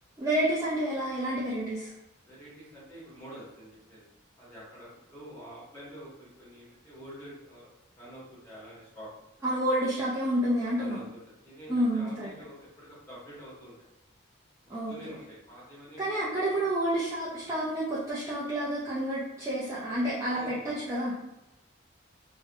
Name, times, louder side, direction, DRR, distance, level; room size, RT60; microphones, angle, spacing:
voice 1, 0.2-1.9 9.4-11.1 11.7-12.3 14.7-14.9 16.0-21.3, right 1 dB, 15° right, -9 dB, 0.4 m, -29 dB
voice 2, 2.2-4.1 4.4-7.7 8.0-9.1 10.6-13.7 14.7-16.2 16.5-16.6 20.3-20.7, equal, 15° left, -9 dB, 1.0 m, -47 dB
2.4 x 2.0 x 2.7 m, 0.93 s
head